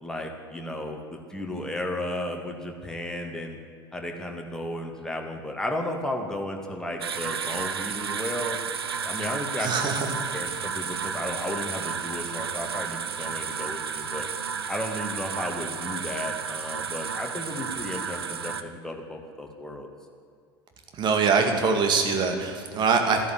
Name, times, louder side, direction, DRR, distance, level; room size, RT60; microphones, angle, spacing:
voice 1, 0.0-3.6 3.9-8.6 9.0-9.7 10.3-14.3 14.7-19.9, left 1 dB, 5° left, 2 dB, 2.3 m, -34 dB
sound 1, 7.0-18.6, right 6 dB, 75° right, 0.8 m, -32 dB
voice 2, 9.6-10.1 21.0-23.2, right 5 dB, 35° right, 4 dB, 2.4 m, -23 dB
14.0 x 11.0 x 8.4 m, 2.3 s
figure-of-eight pair, 75°, 13 cm